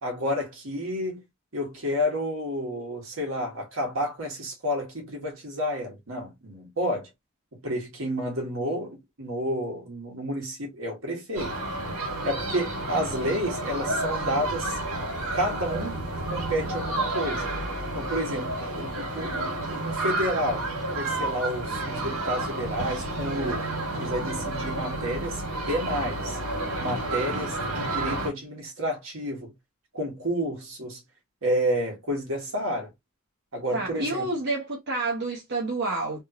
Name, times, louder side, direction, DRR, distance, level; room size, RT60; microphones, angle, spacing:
voice 1, 0.0-1.2 1.5-7.1 7.5-11.6 12.2-14.8 15.3-16.0 16.3-17.5 17.9-20.7 20.9-23.7 24.0-25.4 25.7-26.4 26.8-29.5 29.9-31.0 31.4-32.9 33.5-34.3, equal, 70° right, 1.6 m, -30 dB
sound 1, 11.4-28.3, right 2 dB, 85° right, 1.8 m, -30 dB
voice 2, 33.7-36.2, right 2 dB, 55° right, 0.9 m, -29 dB
3.4 x 2.5 x 2.9 m
head